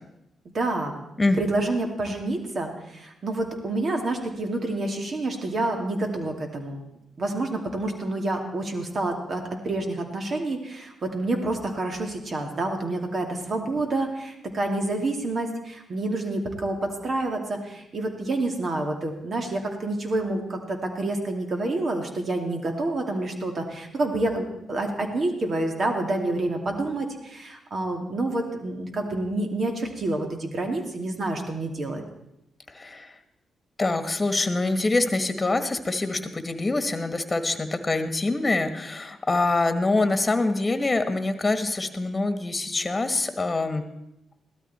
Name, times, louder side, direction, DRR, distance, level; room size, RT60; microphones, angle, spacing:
voice 1, 0.5-0.9 1.4-6.8 7.2-32.0, right 2 dB, 50° right, 3 dB, 2.7 m, -28 dB
voice 2, 32.7-33.1 33.8-43.8, left 2 dB, 25° left, 9 dB, 1.6 m, -25 dB
16.5 x 12.5 x 4.4 m, 0.86 s
supercardioid pair, 55°, 0 cm